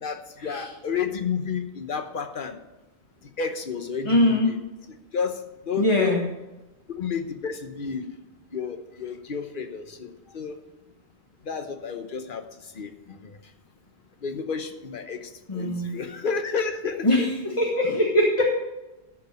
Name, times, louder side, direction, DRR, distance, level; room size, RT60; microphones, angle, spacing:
voice 1, 0.0-2.6 3.4-4.6 5.1-5.4 5.7-6.2 7.0-8.1 8.5-10.6 11.5-12.4 12.7-13.4 14.2-17.3, left 6 dB, 50° left, 7 dB, 1.1 m, -31 dB
voice 2, 4.0-4.5 5.8-6.2 15.5-16.0 17.0-18.5, left 1 dB, 30° left, -1 dB, 1.4 m, -22 dB
13.0 x 4.8 x 6.5 m, 1.0 s
omnidirectional pair, 1.1 m